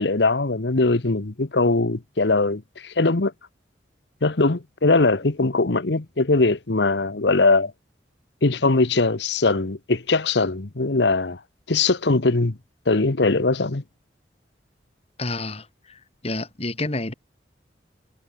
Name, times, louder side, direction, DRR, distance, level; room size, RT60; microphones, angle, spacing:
voice 1, 0.0-3.3 4.2-7.7 8.4-11.4 11.7-12.6 12.9-13.8, left 3 dB, 70° left, 1.2 m, -21 dB
voice 2, 15.2-16.0 16.2-17.1, left 2 dB, 35° left, 2.3 m, -29 dB
head